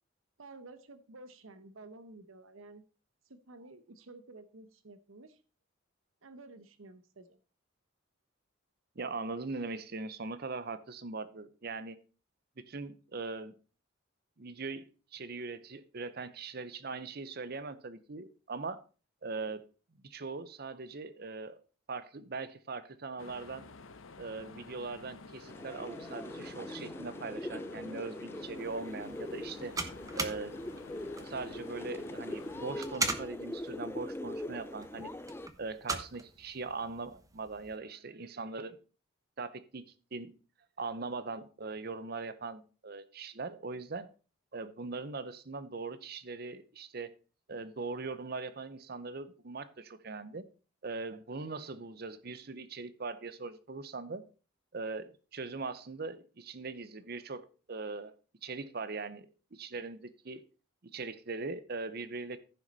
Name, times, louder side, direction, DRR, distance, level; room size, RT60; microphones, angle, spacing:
voice 1, 0.4-2.8 3.2-5.4 6.2-7.4, right 2 dB, 90° right, 0.9 m, -52 dB
voice 2, 9.0-12.0 12.6-13.5 14.4-14.9 15.1-18.8 19.2-19.6 20.0-21.6 21.9-23.6 24.2-29.7 30.1-30.6 31.2-35.1 35.6-38.8 39.4-39.8 40.1-40.3 40.8-44.1 44.5-47.1 47.5-50.4 50.8-54.2 54.7-58.1 58.4-60.4 60.9-62.4, right 3 dB, 50° right, 0.7 m, -40 dB
sound 1, 23.2-32.8, left 4 dB, 80° left, 0.8 m, -51 dB
sound 2, 25.5-35.5, left 1 dB, 10° left, 0.5 m, -42 dB
sound 3, 28.6-37.8, right 3 dB, 15° right, 1.0 m, -41 dB
14.5 x 6.2 x 4.0 m
head